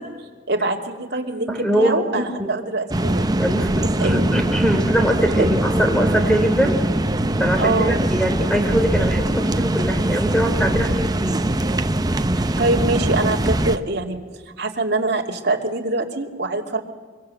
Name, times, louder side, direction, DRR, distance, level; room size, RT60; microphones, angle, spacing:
voice 1, 0.5-3.4 4.0-4.3 5.4-5.5 7.6-8.0 12.6-16.8, right 2 dB, 60° right, 1 dB, 2.7 m, -24 dB
voice 2, 1.5-2.5 3.4-6.8 7.4-11.5, equal, 5° left, 4 dB, 3.5 m, -22 dB
sound 1, 2.9-13.8, right 1 dB, 20° right, 0.7 m, -22 dB
25.0 x 23.5 x 7.7 m, 1.5 s
head